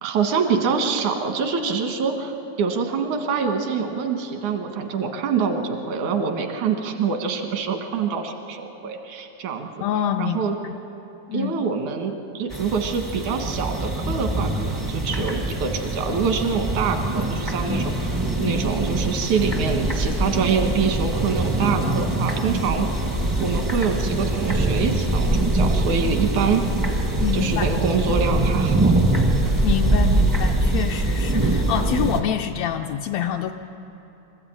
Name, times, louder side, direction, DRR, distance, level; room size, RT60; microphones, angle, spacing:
voice 1, 0.0-9.7 10.2-10.5 11.3-22.9 23.4-26.6 27.3-28.8, right 5 dB, 85° right, 4 dB, 3.0 m, -25 dB
voice 2, 9.8-10.8 11.3-11.6 27.2-27.7 29.6-33.5, left 9 dB, 75° left, 4 dB, 1.7 m, -26 dB
sound 1, 12.5-32.2, right 2 dB, 30° right, 0.4 m, -23 dB
24.5 x 13.5 x 8.8 m, 3.0 s
omnidirectional pair, 3.3 m